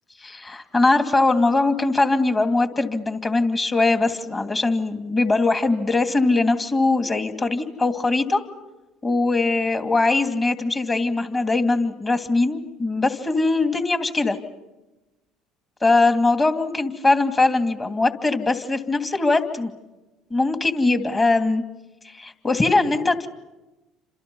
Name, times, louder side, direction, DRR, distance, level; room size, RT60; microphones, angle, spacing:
voice 1, 0.2-8.4 9.0-14.4 15.8-19.7 20.3-21.6 22.0-23.3, left 3 dB, 25° left, 7 dB, 2.8 m, -21 dB
30.0 x 26.5 x 5.6 m, 1.0 s
hypercardioid pair, 70°, 0 cm